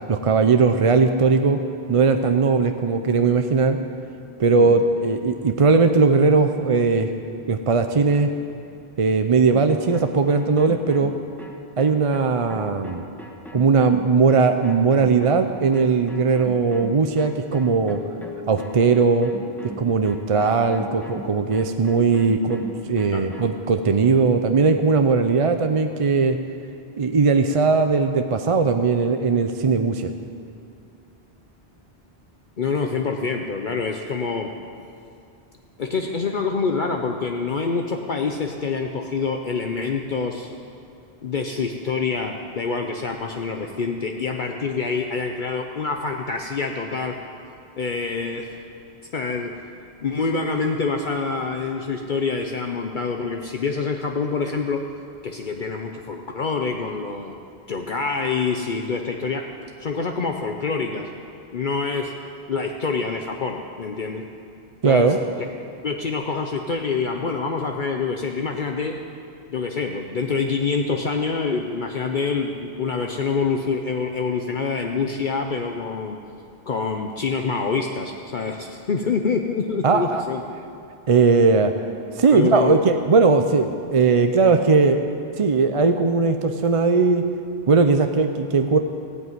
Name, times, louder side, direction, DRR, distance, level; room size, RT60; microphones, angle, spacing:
voice 1, 0.1-1.6 1.9-3.8 4.4-7.1 7.5-8.3 9.0-11.1 11.8-13.0 13.5-18.0 18.5-19.3 19.8-26.4 27.0-30.1 64.8-65.2 79.8-80.2 81.1-81.8 82.2-85.0 85.4-87.2 87.7-88.8, right 4 dB, 40° right, 7 dB, 0.6 m, -19 dB
sound 1, 9.5-23.5, left 1 dB, ahead, 1.3 m, -39 dB
voice 2, 32.6-34.5 35.8-40.5 41.2-47.2 47.8-48.5 49.1-49.6 50.0-54.9 55.2-57.4 57.7-59.5 59.8-61.1 61.5-62.1 62.5-64.2 64.8-65.1 65.8-69.0 69.5-76.2 76.7-80.4 82.3-82.8, left 4 dB, 55° left, 3 dB, 0.9 m, -26 dB
15.0 x 8.2 x 9.3 m, 2.5 s
omnidirectional pair, 1.0 m